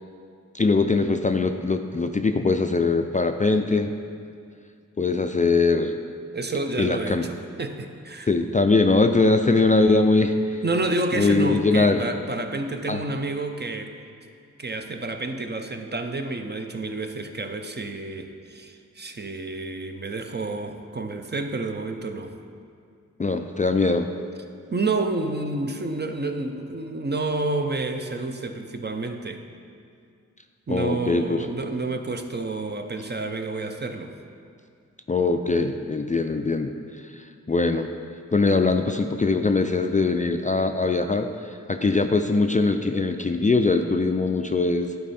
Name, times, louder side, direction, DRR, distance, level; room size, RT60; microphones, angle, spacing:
voice 1, 0.5-3.9 5.0-6.0 6.8-7.2 8.3-10.6 11.1-12.0 12.9-13.0 23.2-24.1 30.7-31.5 35.1-36.7 37.1-37.9 38.3-45.1, left 3 dB, 25° left, 6 dB, 0.3 m, -22 dB
voice 2, 6.3-8.3 10.6-14.0 14.6-22.4 24.7-29.4 30.7-34.2, right 2 dB, 35° right, 6 dB, 0.6 m, -29 dB
11.0 x 4.7 x 4.2 m, 2.3 s
wide cardioid pair, 55°, 31 cm